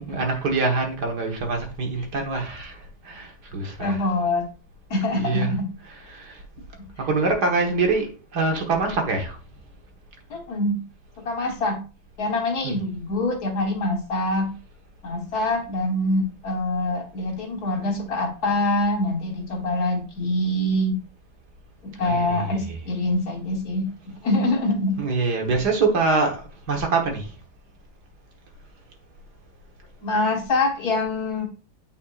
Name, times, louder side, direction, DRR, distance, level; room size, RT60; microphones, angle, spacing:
voice 1, 0.0-4.0 5.2-5.5 5.8-6.4 7.1-9.4 12.6-12.8 22.0-22.8 25.0-27.3, right 3 dB, 65° right, 2.0 m, -25 dB
voice 2, 3.8-4.4 4.9-5.7 6.8-6.9 10.3-10.8 11.2-11.8 12.2-14.5 15.0-21.0 21.8-25.0 30.0-31.5, left 2 dB, 60° left, 1.9 m, -25 dB
8.7 x 5.5 x 2.5 m
omnidirectional pair, 1.9 m